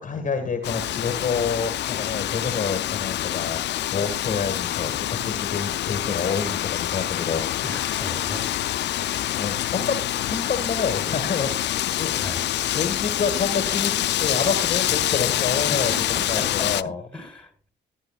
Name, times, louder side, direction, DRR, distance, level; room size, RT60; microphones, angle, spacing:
voice 1, 0.0-7.6 9.4-10.0 10.2-12.3 12.7-17.0, left 5 dB, 40° left, 6 dB, 1.7 m, -28 dB
Wind, 0.6-16.8, left 13 dB, 60° left, 0.4 m, -26 dB
voice 2, 7.6-8.4 12.2-12.4 15.7-16.7 17.1-17.7, left 2 dB, 5° left, 2 dB, 3.5 m, -35 dB
14.0 x 9.7 x 2.4 m, 0.35 s
cardioid pair, 90°, 20 cm